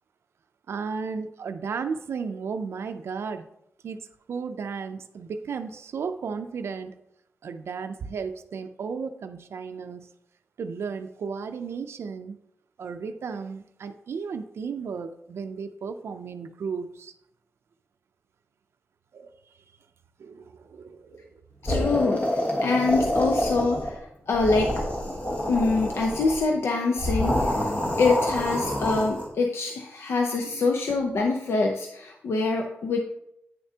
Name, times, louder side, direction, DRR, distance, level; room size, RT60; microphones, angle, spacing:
voice 1, 0.7-3.4 3.8-7.0 7.4-10.1 10.6-12.4 12.8-17.1 19.1-19.4 20.2-21.4 30.4-30.6, right 5 dB, 80° right, 8 dB, 0.4 m, -34 dB
voice 2, 21.6-24.8 25.5-27.7 28.0-33.0, left 3 dB, 75° left, 2 dB, 0.6 m, -25 dB
sound 1, 21.7-24.0 24.3-26.4 27.0-29.3, left 1 dB, 35° left, 1.4 m, -27 dB
9.2 x 6.6 x 2.8 m, 0.79 s
wide cardioid pair, 140°, 4 cm